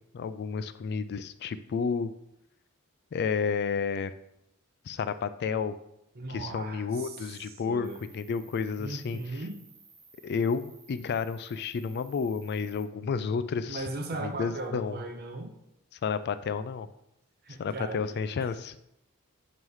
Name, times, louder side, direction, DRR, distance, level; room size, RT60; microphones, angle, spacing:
voice 1, 0.1-2.1 3.1-4.1 4.8-5.8 6.3-7.9 8.1-9.4 10.2-13.9 14.2-15.0 15.9-16.9 17.6-18.8, left 5 dB, 50° left, 12 dB, 0.3 m, -31 dB
voice 2, 6.2-8.0 8.8-9.6 13.7-15.5 17.4-18.5, right 2 dB, 45° right, 3 dB, 0.7 m, -38 dB
Cricket, 7.8-12.8, right 4 dB, 20° right, 1.0 m, -56 dB
7.6 x 3.1 x 5.5 m, 0.81 s
head